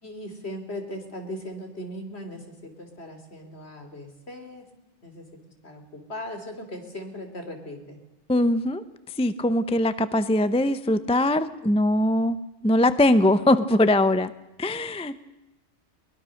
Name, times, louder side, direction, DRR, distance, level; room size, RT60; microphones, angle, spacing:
voice 1, 0.0-4.7 5.0-5.3 5.6-8.0, left 1 dB, 60° left, 5 dB, 3.6 m, -38 dB
voice 2, 8.3-8.8 9.2-12.4 12.6-14.3 14.6-15.2, left 1 dB, 5° left, 13 dB, 0.6 m, -21 dB
22.5 x 20.5 x 6.5 m, 0.96 s
omnidirectional pair, 1.2 m